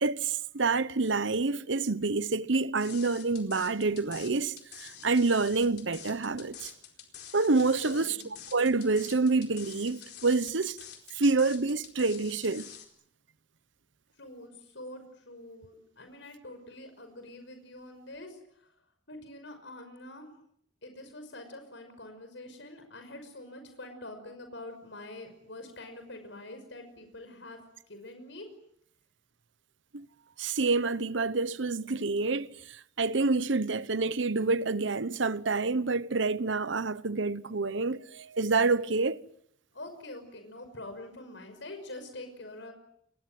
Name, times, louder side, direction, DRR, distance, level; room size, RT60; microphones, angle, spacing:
voice 1, 0.0-6.7 7.3-8.2 8.5-10.8 11.1-12.7 29.9-30.1 30.4-39.2, right 3 dB, 80° right, 1.0 m, -28 dB
sound 1, 2.8-12.9, left 9 dB, 55° left, 4.4 m, -47 dB
voice 2, 7.8-8.3 14.2-18.4 19.1-20.3 20.8-27.6 27.9-28.5 39.7-42.7, left 1 dB, 80° left, 5.9 m, -45 dB
29.5 x 22.5 x 7.7 m
head